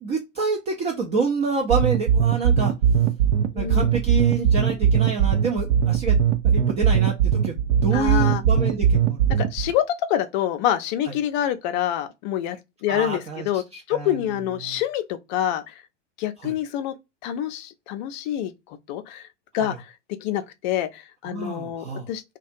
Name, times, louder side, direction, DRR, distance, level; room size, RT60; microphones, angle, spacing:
voice 1, 0.0-2.7 3.5-6.2 6.4-9.3 11.1-11.2 12.9-14.8 16.4-16.5 19.6-19.8 21.3-22.1, right 4 dB, 20° right, 0.3 m, -28 dB
sound 1, 1.7-9.7, right 8 dB, 65° right, 0.6 m, -19 dB
voice 2, 7.9-8.4 9.4-12.6 12.8-13.6 13.9-15.6 16.2-16.9 17.2-18.5 18.9-19.2 19.5-19.7 20.2-22.2, left 11 dB, 40° left, 0.5 m, -26 dB
2.4 x 2.3 x 2.5 m
figure-of-eight pair, 95°, 37 cm